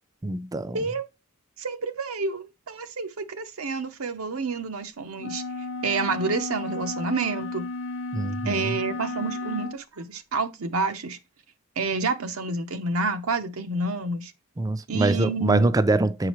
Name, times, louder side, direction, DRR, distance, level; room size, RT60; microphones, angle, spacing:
voice 1, 0.2-0.8 8.1-8.8 14.6-16.3, right 2 dB, 15° right, 0.4 m, -24 dB
voice 2, 1.6-5.4 5.8-7.7 8.4-11.2 11.8-14.3 14.9-15.8, right 4 dB, 85° right, 0.8 m, -29 dB
sound 1, 5.2-9.8, left 3 dB, 60° left, 0.5 m, -33 dB
7.4 x 4.8 x 3.0 m
head